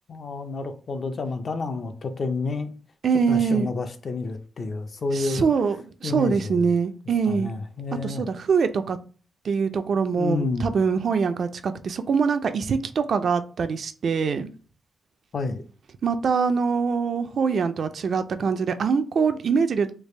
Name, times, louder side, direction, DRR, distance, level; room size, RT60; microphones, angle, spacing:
voice 1, 0.1-2.7 3.3-5.4 6.0-6.7 7.3-8.3 10.1-10.7 15.3-15.6, left 3 dB, 45° left, 0.4 m, -29 dB
voice 2, 3.0-3.7 5.1-5.8 6.0-7.5 8.0-9.0 9.4-14.5 16.0-19.9, right 5 dB, 60° right, 0.3 m, -23 dB
3.3 x 2.3 x 3.2 m
cardioid pair, 110°, 0 cm